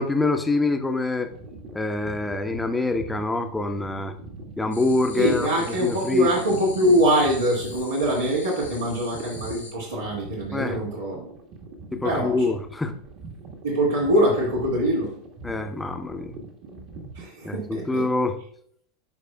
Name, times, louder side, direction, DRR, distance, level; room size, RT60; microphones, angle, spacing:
voice 1, 0.0-1.3 1.7-4.1 4.6-6.3 10.5-10.8 11.9-12.9 15.4-16.3 17.4-18.4, left 2 dB, 10° left, 7 dB, 0.8 m, -25 dB
sound 1, 1.2-17.3, right 3 dB, 40° right, 1.5 m, -42 dB
sound 2, 4.7-9.7, left 3 dB, 85° left, 1.4 m, -42 dB
voice 2, 5.2-11.2 12.0-12.4 13.6-15.1 17.1-18.0, equal, 75° right, -6 dB, 1.9 m, -23 dB
11.5 x 5.1 x 2.3 m, 0.64 s
figure-of-eight pair, 85°, 0 cm